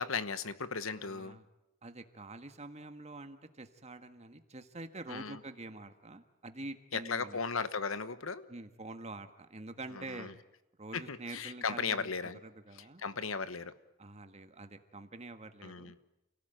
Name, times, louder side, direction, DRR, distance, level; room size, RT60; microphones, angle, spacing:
voice 1, 0.0-1.4 5.1-5.4 6.9-8.5 9.9-10.3 10.9-12.4 13.0-13.7 15.6-15.9, left 5 dB, 75° left, 13 dB, 1.2 m, -36 dB
voice 2, 0.9-1.5 1.8-7.4 8.5-10.4 10.8-13.0 14.0-15.9, right 2 dB, 30° right, 8 dB, 1.6 m, -46 dB
28.5 x 18.0 x 9.2 m, 0.93 s
head